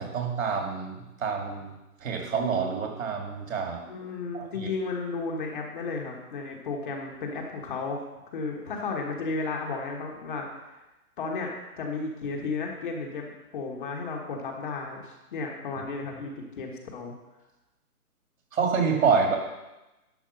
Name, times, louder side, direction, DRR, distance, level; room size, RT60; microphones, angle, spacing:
voice 1, 0.0-1.7 2.0-3.8 4.3-4.7 18.5-19.4, right 5 dB, 60° right, 1 dB, 2.7 m, -27 dB
voice 2, 3.9-8.1 8.3-10.5 10.7-10.8 11.2-11.5 11.8-17.1, left 4 dB, 35° left, 0 dB, 1.4 m, -33 dB
11.0 x 4.9 x 6.4 m, 1.0 s
hypercardioid pair, 155°, 45 cm